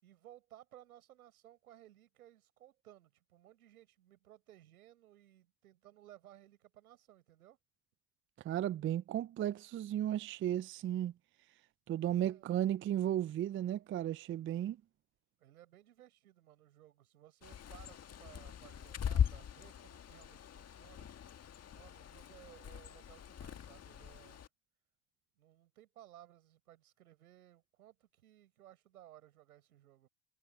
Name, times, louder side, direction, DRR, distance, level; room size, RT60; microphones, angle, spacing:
voice 1, 0.0-7.6 12.0-12.6 15.4-21.1 21.7-24.4 25.4-30.1, right 13 dB, 80° right, 6.9 m, -60 dB
voice 2, 8.4-11.1 11.9-14.8, right 11 dB, 30° right, 0.5 m, -34 dB
Bird, 17.4-24.5, left 8 dB, 35° left, 1.8 m, -40 dB
hypercardioid pair, 65°, 44 cm